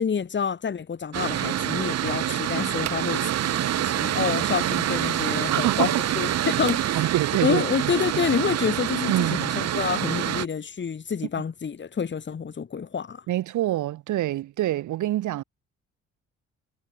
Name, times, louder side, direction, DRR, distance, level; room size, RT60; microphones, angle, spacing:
voice 1, 0.0-7.1 7.4-13.2, left 6 dB, 40° left, 2.2 m, -28 dB
Mechanical fan, 1.1-10.5, right 11 dB, 55° right, 0.9 m, -26 dB
voice 2, 5.5-6.0 6.4-6.5 6.9-8.2 9.1-9.5 13.3-15.4, right 14 dB, 80° right, 1.4 m, -26 dB
cardioid pair, 90°, 30 cm